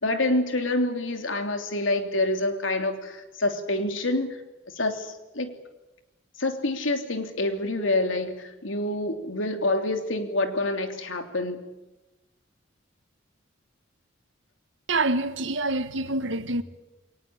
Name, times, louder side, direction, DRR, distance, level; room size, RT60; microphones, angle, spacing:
voice 1, 0.0-4.4 4.7-5.5 6.4-11.6, left 2 dB, 85° left, 3.1 m, -27 dB
voice 2, 14.9-16.6, right 2 dB, 75° right, 1.5 m, -26 dB
22.5 x 19.5 x 8.7 m
head